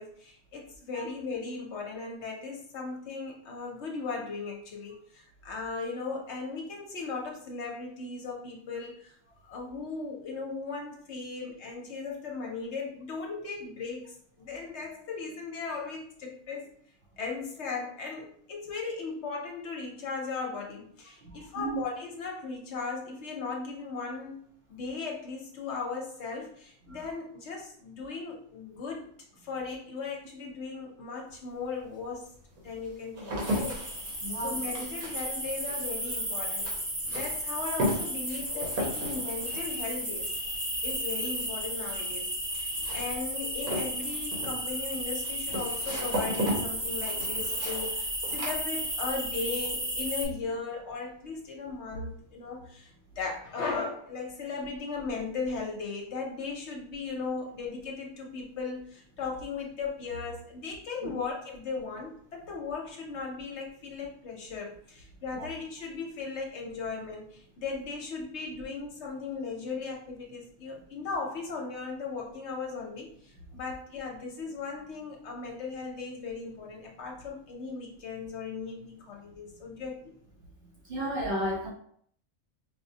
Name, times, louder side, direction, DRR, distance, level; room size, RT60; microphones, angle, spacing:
voice 1, 0.0-9.1 9.4-16.7 17.2-24.4 24.7-29.1 29.4-32.3 32.6-36.7 37.1-40.3 40.8-80.0, left 4 dB, 60° left, 0 dB, 0.8 m, -37 dB
voice 2, 21.2-21.8 34.2-34.6 61.0-61.2 65.4-65.5 80.9-81.7, right 1 dB, 60° right, -2 dB, 0.7 m, -33 dB
sound 1, 31.3-31.4 32.1-49.3 49.6-50.1, equal, 85° right, 1.6 m, -36 dB
Italien - Sommernacht - Toskana - Grillen, 33.4-50.2, equal, 20° right, 0.5 m, -34 dB
4.7 x 2.1 x 2.7 m, 0.62 s
omnidirectional pair, 1.5 m